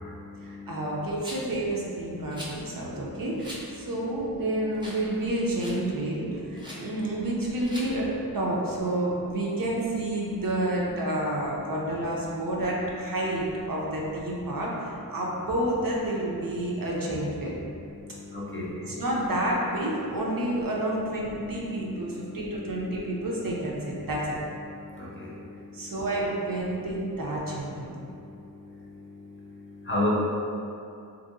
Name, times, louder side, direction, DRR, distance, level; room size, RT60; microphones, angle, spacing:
voice 1, 0.4-17.5 18.8-24.3 25.7-28.0, right 1 dB, 60° right, -4 dB, 0.5 m, -29 dB
Rattle, 1.2-1.6 2.3-2.6 3.4-3.6 4.1-4.2 4.7-5.1 5.3-5.8 6.5-6.8 7.6-7.9, equal, 10° right, 0.6 m, -41 dB
voice 2, 18.3-18.7 21.7-21.8 22.5-22.8 25.0-25.3 29.9-30.1, left 2 dB, 30° left, -6 dB, 0.6 m, -30 dB
2.7 x 2.6 x 2.6 m, 2.6 s
wide cardioid pair, 45°, 39 cm